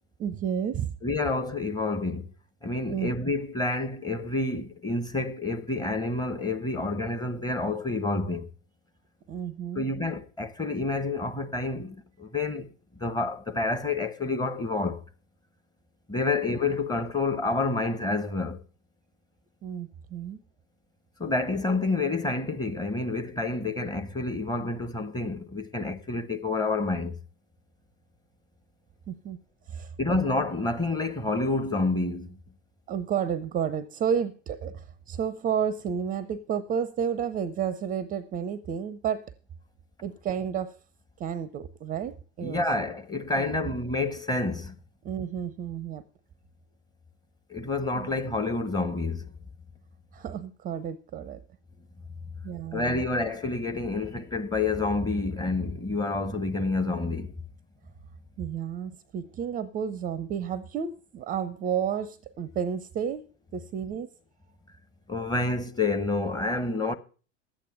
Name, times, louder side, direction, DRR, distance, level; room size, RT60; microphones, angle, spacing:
voice 1, 0.2-1.0 2.9-3.1 9.3-9.9 19.6-20.4 29.1-29.4 29.7-30.2 32.9-39.3 40.0-40.8 41.2-42.6 43.4-43.7 45.0-46.0 47.9-48.1 50.1-51.4 52.4-53.0 58.4-64.1, right 8 dB, 25° right, 0.5 m, -31 dB
voice 2, 1.0-2.3 2.6-8.5 9.7-15.0 16.1-18.6 21.2-27.2 30.0-32.4 42.4-44.7 47.5-49.3 52.7-57.4 65.1-66.9, left 3 dB, 10° left, 0.9 m, -28 dB
11.5 x 8.4 x 6.6 m
figure-of-eight pair, 80°, 36 cm